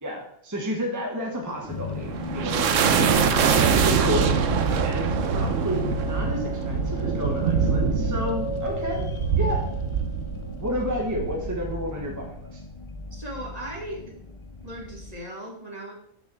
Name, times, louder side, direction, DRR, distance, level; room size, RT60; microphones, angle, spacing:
voice 1, 0.0-4.6 4.8-9.0 9.4-9.6 10.6-12.6, equal, 15° right, -1 dB, 1.3 m, -31 dB
sound 1, 1.6-12.4, right 6 dB, 75° right, 1.1 m, -24 dB
sound 2, 1.7-15.1, left 3 dB, 30° left, 0.6 m, -35 dB
voice 2, 13.1-14.2 14.6-15.9, right 1 dB, 30° right, -1 dB, 2.4 m, -37 dB
6.5 x 5.5 x 7.2 m, 0.70 s
omnidirectional pair, 1.3 m